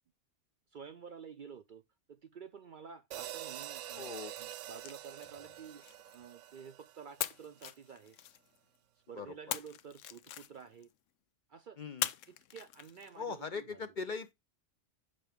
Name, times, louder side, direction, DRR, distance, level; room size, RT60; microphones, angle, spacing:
voice 1, 0.7-1.8 2.1-4.1 4.4-5.8 6.1-8.2 9.1-10.9 11.5-11.8 12.3-13.8, right 6 dB, 55° right, 0.6 m, -51 dB
sound 1, 3.1-7.5, right 12 dB, 80° right, 0.9 m, -46 dB
voice 2, 4.0-4.3 9.2-9.6 11.8-12.1 13.2-14.3, left 5 dB, 50° left, 0.7 m, -40 dB
sound 2, 4.4-6.7 7.2-8.8 9.5-10.9 12.0-13.4, left 12 dB, 90° left, 1.0 m, -42 dB
7.6 x 5.5 x 3.4 m
omnidirectional pair, 1.2 m